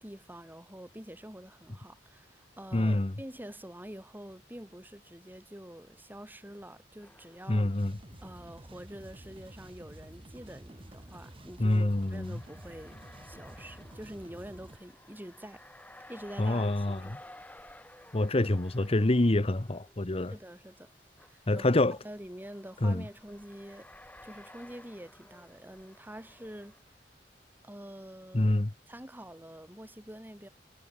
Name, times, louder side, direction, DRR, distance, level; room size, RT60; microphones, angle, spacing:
voice 1, 0.0-7.7 8.2-15.6 16.1-17.1 20.3-20.9 21.2-21.7 22.0-23.9 24.2-26.9 27.6-28.5 28.9-30.5, equal, 10° right, 4.2 m, -46 dB
voice 2, 2.7-3.1 7.5-8.0 11.6-12.4 16.4-17.1 18.1-20.3 21.5-22.0 22.8-23.0 28.3-28.7, left 1 dB, 35° left, 0.9 m, -26 dB
sound 1, 7.0-8.1 8.4-8.5 9.6-26.8, left 1 dB, 10° left, 7.8 m, -55 dB
sound 2, 7.7-14.8, right 1 dB, 30° right, 1.9 m, -50 dB
head